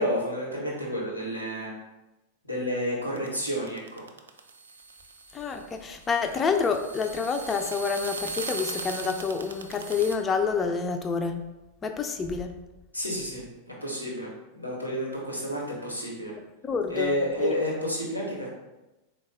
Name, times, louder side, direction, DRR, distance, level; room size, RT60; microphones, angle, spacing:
voice 1, 0.0-1.8 2.4-4.0 12.9-13.4 13.8-16.3 16.9-18.5, equal, 85° left, -2 dB, 0.9 m, -30 dB
sound 1, 3.2-10.2, right 4 dB, 70° right, 0.3 m, -39 dB
voice 2, 5.3-11.4 11.8-12.5 16.6-17.6, left 5 dB, 20° left, 6 dB, 0.4 m, -28 dB
3.9 x 2.3 x 3.7 m, 1.0 s
figure-of-eight pair, 90°, 0 cm